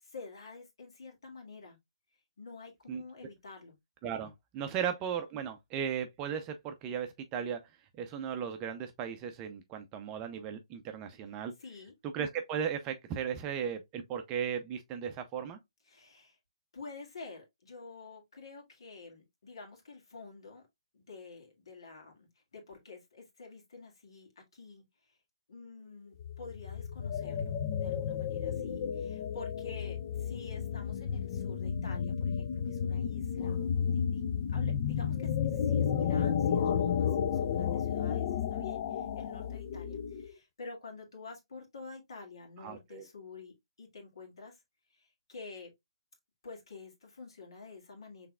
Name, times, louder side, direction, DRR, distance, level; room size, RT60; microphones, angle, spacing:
voice 1, 0.0-1.8 2.4-3.8 4.7-4.9 11.6-11.9 15.9-16.4 16.7-20.7 20.9-25.1 25.5-33.6 33.9-34.2 34.5-44.6 44.9-45.7 46.4-48.3, left 4 dB, 65° left, 2.0 m, -49 dB
voice 2, 4.0-7.6 8.0-11.5 12.1-15.6 42.6-43.1, right 8 dB, 25° right, 0.5 m, -36 dB
sound 1, 26.2-40.3, left 8 dB, 40° left, 0.5 m, -32 dB
5.6 x 3.4 x 2.3 m
figure-of-eight pair, 140°, 3 cm